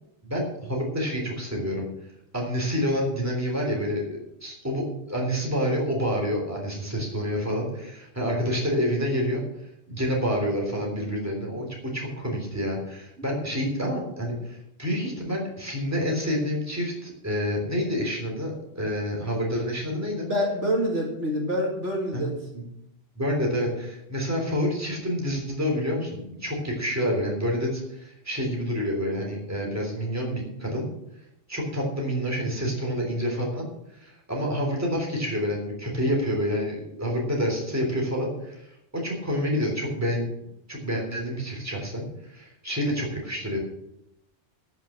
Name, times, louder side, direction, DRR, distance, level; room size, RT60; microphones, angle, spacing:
voice 1, 0.2-1.9 2.3-9.4 9.9-20.3 22.1-22.3 22.5-22.6 23.2-30.9 31.5-33.7 33.9-38.7 39.0-40.2 40.7-43.6, equal, 10° right, -1 dB, 3.5 m, -28 dB
voice 2, 19.9-22.3, equal, 65° right, 0 dB, 2.8 m, -27 dB
13.5 x 6.3 x 7.6 m, 0.82 s
omnidirectional pair, 1.3 m